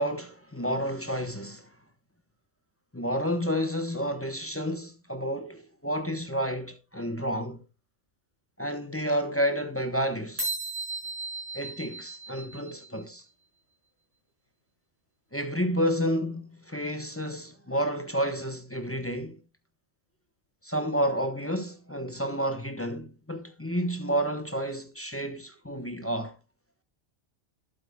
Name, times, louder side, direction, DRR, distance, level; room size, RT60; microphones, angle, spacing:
voice 1, 0.0-1.7 2.9-7.6 8.6-10.5 11.5-13.2 15.3-19.4 20.6-26.3, equal, 15° left, 0.8 m, -30 dB
sound 1, 10.4-13.0, right 3 dB, 30° right, 5.8 m, -35 dB
12.0 x 7.9 x 2.2 m
omnidirectional pair, 1.2 m